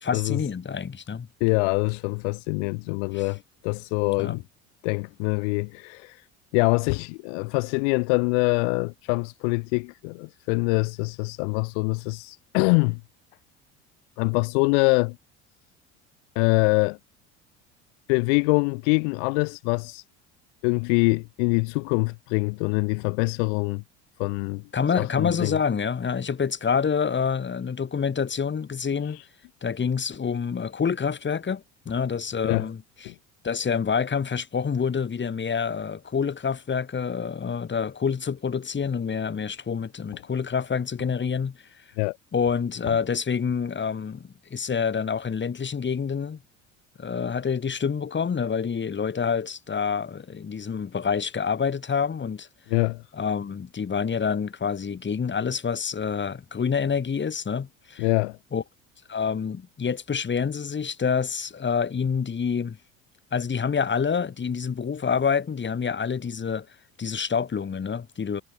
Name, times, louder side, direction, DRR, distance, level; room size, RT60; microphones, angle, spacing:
voice 1, 0.0-1.3 3.1-3.2 4.2-4.4 24.7-29.2 29.6-33.1 33.4-41.6 42.3-46.4 47.0-52.5 53.1-58.1 58.5-58.6 59.1-62.8 63.3-66.7 67.0-68.4, left 6 dB, 30° left, 4.4 m, -27 dB
voice 2, 1.4-4.4 4.8-6.2 6.5-13.0 14.2-15.2 16.3-17.0 18.1-20.0 20.6-23.8 24.2-24.6 24.9-25.6 32.4-32.7 33.0-33.1 42.0-42.2 52.7-53.0 58.0-58.4, left 35 dB, 70° left, 1.0 m, -24 dB
hypercardioid pair, 70°, 36 cm